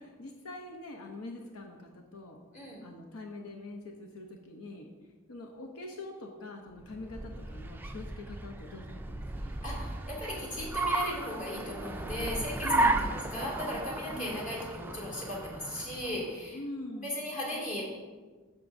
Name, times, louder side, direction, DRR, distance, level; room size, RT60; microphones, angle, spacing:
voice 1, 0.0-4.9 5.3-9.5 12.6-13.2 14.1-14.6 16.5-17.2, left 2 dB, 85° left, 2 dB, 0.8 m, -44 dB
voice 2, 2.5-2.9 9.5-16.6 17.0-17.8, left 1 dB, 35° left, -5 dB, 2.4 m, -37 dB
Car, 6.8-16.3, right 2 dB, 10° right, 0.3 m, -34 dB
13.0 x 6.0 x 2.6 m, 1.4 s
head